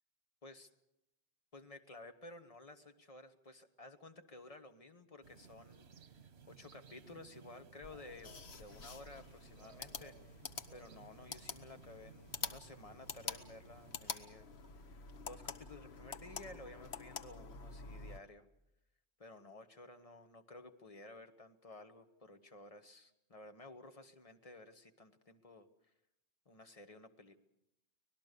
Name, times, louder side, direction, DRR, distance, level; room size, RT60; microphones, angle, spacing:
voice 1, 1.5-5.9 6.2-10.4 10.7-14.5 14.8-18.4 19.2-25.7 26.4-27.4, left 2 dB, 35° left, 7 dB, 1.4 m, -54 dB
sound 1, 5.2-14.1, right 6 dB, 85° right, 1.4 m, -60 dB
sound 2, 7.8-18.2, left 5 dB, 80° left, 1.4 m, -47 dB
25.0 x 19.0 x 6.8 m, 0.83 s
omnidirectional pair, 1.1 m